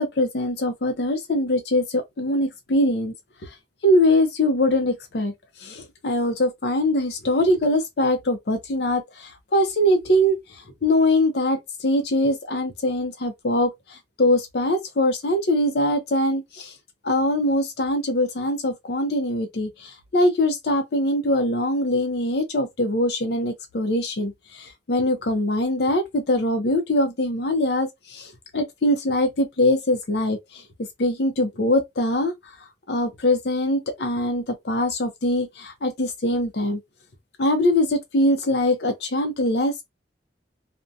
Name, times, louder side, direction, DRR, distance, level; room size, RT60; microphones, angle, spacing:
voice 1, 0.0-3.1 3.4-3.5 3.8-5.3 5.6-16.7 17.0-30.6 31.0-32.5 32.9-36.8 37.4-39.8, left 1 dB, 60° left, 0.5 m, -22 dB
2.6 x 2.1 x 2.4 m
head